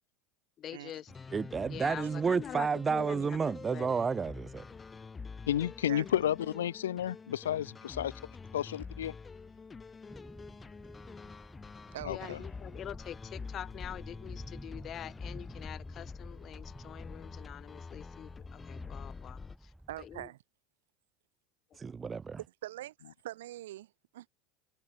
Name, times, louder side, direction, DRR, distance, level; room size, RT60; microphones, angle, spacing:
voice 1, 0.6-1.1 1.7-4.0 6.0-6.2 12.1-19.7 20.0-20.3, left 10 dB, 40° left, 2.0 m, -45 dB
sound 1, 1.1-19.6, left 4 dB, 20° left, 1.7 m, -47 dB
voice 2, 1.3-4.6 21.7-22.4, right 5 dB, 25° right, 0.5 m, -31 dB
voice 3, 5.5-8.1 8.5-9.1 12.0-12.4, left 11 dB, 90° left, 0.6 m, -32 dB
sound 2, 10.1-20.3, right 1 dB, 5° right, 4.6 m, -51 dB
voice 4, 11.9-12.4 19.9-20.4 22.6-24.3, right 14 dB, 80° right, 2.8 m, -44 dB
hypercardioid pair, 95°, 0 cm